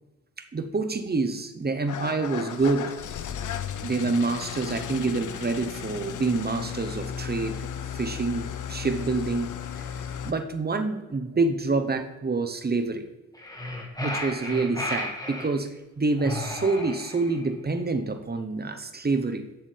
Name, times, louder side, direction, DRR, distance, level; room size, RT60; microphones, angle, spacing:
voice 1, 0.5-2.9 3.8-7.7 7.9-13.1 14.0-15.7 16.0-19.4, right 3 dB, 25° right, 7 dB, 0.9 m, -27 dB
Engine starting / Idling, 1.9-10.3, left 8 dB, 50° left, 0.6 m, -35 dB
sound 1, 13.3-15.5 16.2-17.4, left 1 dB, 10° left, 1.8 m, -33 dB
7.0 x 6.8 x 3.4 m, 1.1 s
supercardioid pair, 50°, 39 cm